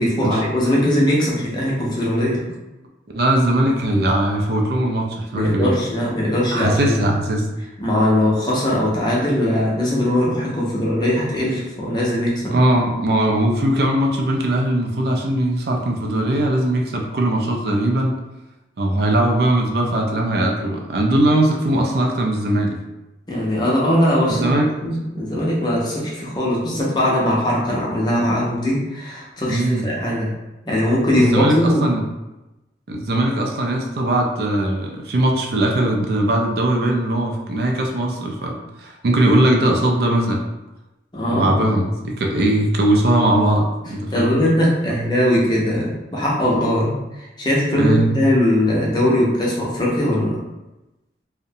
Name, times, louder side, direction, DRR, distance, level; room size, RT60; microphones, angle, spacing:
voice 1, 0.0-2.4 5.3-7.0 7.8-12.5 23.3-24.5 24.8-30.3 30.6-31.8 41.1-41.6 44.1-50.4, left 1 dB, 25° left, -5 dB, 0.6 m, -20 dB
voice 2, 3.1-5.8 6.5-7.5 12.5-18.1 18.8-22.8 24.3-24.7 29.5-29.9 31.1-32.0 32.9-40.4 41.3-44.4 47.8-48.2, right 1 dB, 60° right, 1 dB, 0.4 m, -20 dB
2.5 x 2.1 x 2.7 m, 1.0 s
head